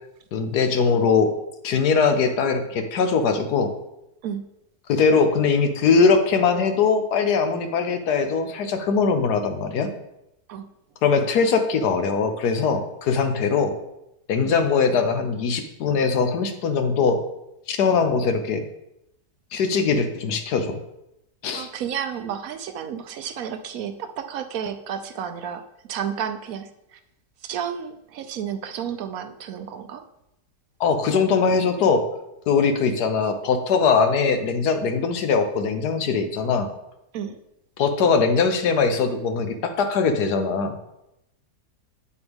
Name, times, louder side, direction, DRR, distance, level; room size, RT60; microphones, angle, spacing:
voice 1, 0.3-1.3 1.6-3.7 4.9-9.9 11.0-13.7 14.3-17.2 17.7-18.6 19.5-20.8 21.4-21.7 30.8-32.0 32.5-36.7 37.8-40.8, left 5 dB, 80° left, 7 dB, 1.4 m, -21 dB
voice 2, 21.5-25.6 25.9-27.0 27.4-30.0 37.1-37.4, right 8 dB, 70° right, 8 dB, 1.0 m, -31 dB
8.6 x 7.0 x 3.5 m, 0.87 s
omnidirectional pair, 1.7 m